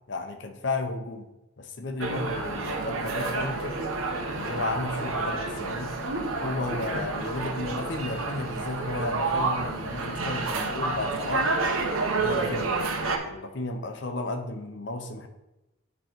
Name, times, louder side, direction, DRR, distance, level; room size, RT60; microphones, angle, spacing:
voice 1, 0.1-1.3 1.6-3.8 4.3-5.9 6.4-11.6 12.2-12.8 13.2-15.3, left 2 dB, 55° left, 6 dB, 0.7 m, -33 dB
sound 1, 2.0-13.2, right 3 dB, 85° right, 0.9 m, -29 dB
8.9 x 3.2 x 4.3 m, 0.96 s
head